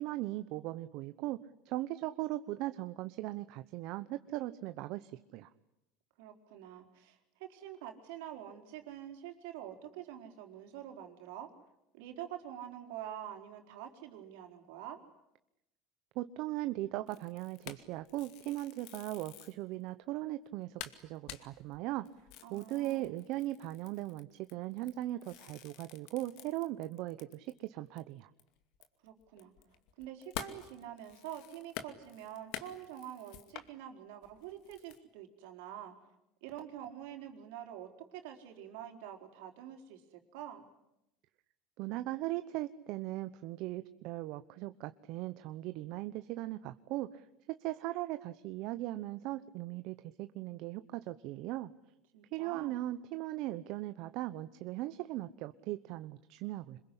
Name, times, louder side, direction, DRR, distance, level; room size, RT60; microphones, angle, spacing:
voice 1, 0.0-1.4 1.6-5.5 16.1-22.1 22.5-28.3 41.8-51.7 52.3-56.8, right 16 dB, 65° right, 11 dB, 0.9 m, -39 dB
voice 2, 6.2-11.5 11.9-15.0 22.4-23.1 29.0-29.5 30.0-35.9 36.4-40.7 52.1-52.8, right 11 dB, 80° right, 5 dB, 4.2 m, -46 dB
sound 1, 17.1-19.6 20.1-20.2 20.5-20.6 20.8-27.7 28.0-28.1 28.4-33.7 34.2-35.0, left 11 dB, 70° left, 2.4 m, -48 dB
26.5 x 22.0 x 9.9 m, 0.87 s
supercardioid pair, 110°, 0 cm